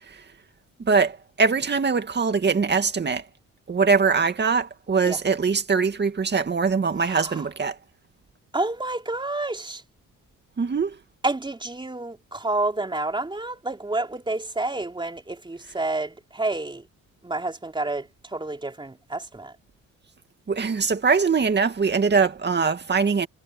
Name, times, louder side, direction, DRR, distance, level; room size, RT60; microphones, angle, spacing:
voice 1, 0.8-3.3 3.7-7.8 10.6-11.0 20.5-23.3, right 5 dB, 35° right, 2.3 m, -22 dB
voice 2, 7.0-7.5 8.5-9.8 11.2-16.8 17.2-19.5, right 2 dB, 15° right, 3.7 m, -29 dB
cardioid pair, 90°, 30 cm